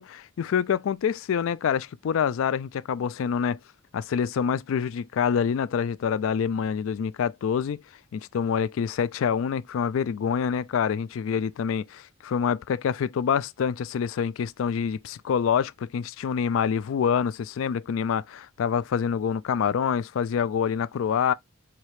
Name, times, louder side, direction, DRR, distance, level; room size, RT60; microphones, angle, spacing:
voice 1, 0.0-3.6 3.9-7.8 8.1-21.3, left 7 dB, 70° left, 0.3 m, -26 dB
4.8 x 2.8 x 2.9 m
head